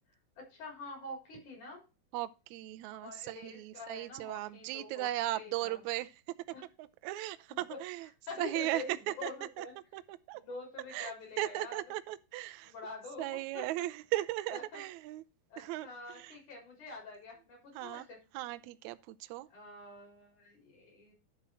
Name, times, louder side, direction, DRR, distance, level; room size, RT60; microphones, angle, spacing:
voice 1, 0.4-1.8 2.9-5.1 5.3-5.8 6.5-6.6 7.5-7.8 8.3-9.7 10.3-11.8 12.6-13.3 13.5-13.7 14.5-14.8 15.5-18.2 19.5-21.1, left 3 dB, 65° left, 5.2 m, -46 dB
voice 2, 2.1-6.1 6.8-8.1 8.4-9.0 9.2-9.3 9.6-9.7 9.9-10.4 10.9-12.7 13.2-15.2 15.6-15.9 16.1-16.4 17.8-18.1 18.3-19.5, right 16 dB, 80° right, 1.7 m, -37 dB
11.0 x 4.0 x 6.2 m
omnidirectional pair, 3.8 m